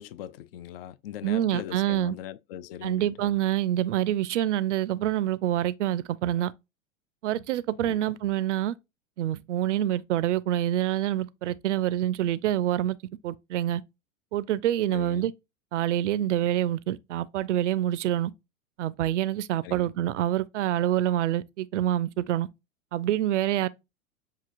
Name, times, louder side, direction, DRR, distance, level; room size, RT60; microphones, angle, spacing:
voice 1, 0.0-3.3 7.9-8.1 14.9-15.3 19.6-19.9, left 11 dB, 45° left, 0.4 m, -40 dB
voice 2, 1.2-2.2 2.8-6.5 7.2-8.7 9.2-13.0 13.2-13.8 14.3-15.3 15.7-18.3 18.8-22.5 22.9-23.7, right 12 dB, 60° right, 0.5 m, -26 dB
6.7 x 2.7 x 2.5 m
figure-of-eight pair, 90°, 40 cm